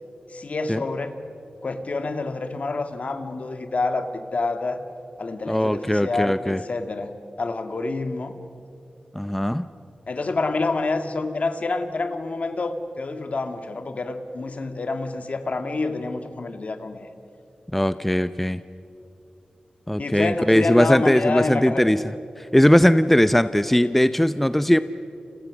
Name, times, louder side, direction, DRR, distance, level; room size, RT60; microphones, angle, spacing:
voice 1, 0.3-1.2 1.6-4.8 5.2-7.1 7.4-8.4 10.1-17.1 20.0-21.9, left 3 dB, 60° left, 7 dB, 1.9 m, -27 dB
voice 2, 5.5-6.6 9.1-9.7 17.7-18.6 19.9-22.0 22.4-24.8, equal, 5° left, 12 dB, 0.6 m, -19 dB
30.0 x 28.5 x 6.4 m, 2.8 s
wide cardioid pair, 75°, 3 cm